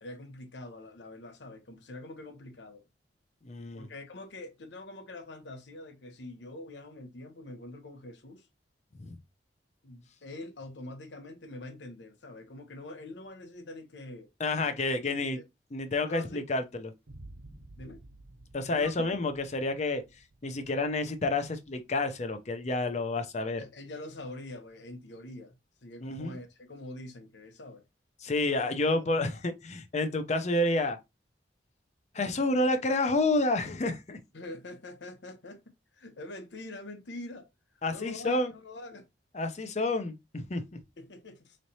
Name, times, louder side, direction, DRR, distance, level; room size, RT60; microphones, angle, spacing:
voice 1, 0.0-2.8 3.7-8.5 9.8-14.3 15.0-15.4 16.0-16.4 17.8-18.0 18.7-18.9 23.6-25.5 25.8-27.8 28.5-28.6 28.9-29.3 34.3-37.5 37.9-39.1 41.0-41.6, left 2 dB, 90° left, 0.9 m, -44 dB
voice 2, 3.4-3.9 9.0-9.2 14.4-15.4 15.7-16.9 18.5-20.0 20.4-23.6 26.0-26.4 28.2-31.0 32.1-34.2 37.8-38.5 39.3-40.8, left 2 dB, 40° left, 0.6 m, -29 dB
sound 1, 17.1-24.5, right 1 dB, 80° right, 0.9 m, -54 dB
4.1 x 3.2 x 2.7 m
head